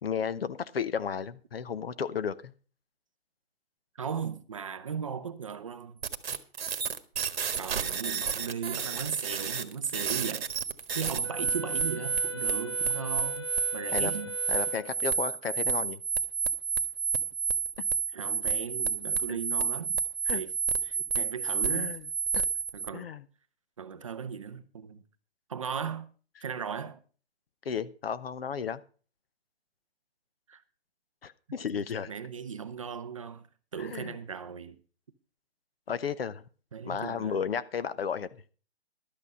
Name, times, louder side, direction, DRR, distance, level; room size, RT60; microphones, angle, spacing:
voice 1, 0.0-2.5 13.9-14.1 14.5-16.0 19.3-19.4 20.3-20.4 21.6-22.0 22.3-22.4 22.9-23.2 27.6-28.8 31.2-32.1 33.8-34.2 35.9-36.4 36.8-38.3, left 7 dB, 65° left, 0.9 m, -33 dB
voice 2, 4.0-6.0 7.6-10.5 10.9-14.4 18.1-20.0 20.3-20.5 20.8-22.0 22.7-23.1 23.8-25.0 25.5-26.1 26.4-27.0 30.5-30.6 31.7-31.8 32.1-33.5 33.7-34.8 36.7-37.4, right 7 dB, 30° right, 0.6 m, -37 dB
sound 1, 6.0-22.9, right 6 dB, 65° right, 1.4 m, -30 dB
Wind instrument woodwind instrument, 11.2-15.1, left 4 dB, 25° left, 0.6 m, -41 dB
12.0 x 8.6 x 5.4 m
hypercardioid pair, 170°, 32 cm